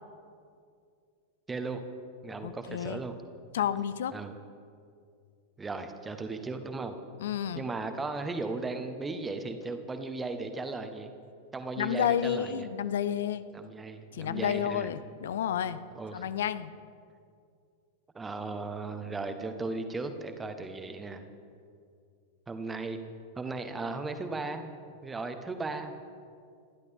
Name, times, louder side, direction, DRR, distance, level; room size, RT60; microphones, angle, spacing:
voice 1, 1.5-1.8 2.2-3.1 4.1-4.3 5.6-6.9 7.5-11.1 11.5-12.7 13.5-14.9 15.9-16.2 18.1-21.2 22.5-23.0 23.4-24.6 25.0-25.9, right 3 dB, 15° right, 8 dB, 1.3 m, -36 dB
voice 2, 2.4-3.0 3.5-4.1 7.2-7.6 11.8-13.4 14.1-15.8 16.1-16.7, left 9 dB, 60° left, 15 dB, 0.6 m, -30 dB
28.0 x 11.5 x 3.7 m, 2.3 s
figure-of-eight pair, 90°, 0 cm